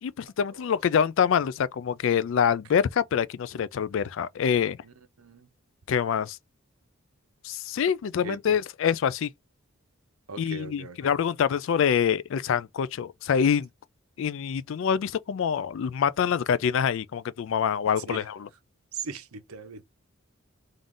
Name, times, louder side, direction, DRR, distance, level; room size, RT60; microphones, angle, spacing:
voice 1, 0.0-4.8 5.9-6.4 7.4-9.3 10.4-13.7 14.2-18.5, left 7 dB, 60° left, 0.3 m, -25 dB
voice 2, 4.8-5.5 8.2-8.6 10.3-11.1 18.1-18.2 18.9-19.8, right 4 dB, 90° right, 0.8 m, -40 dB
3.8 x 2.5 x 3.6 m
head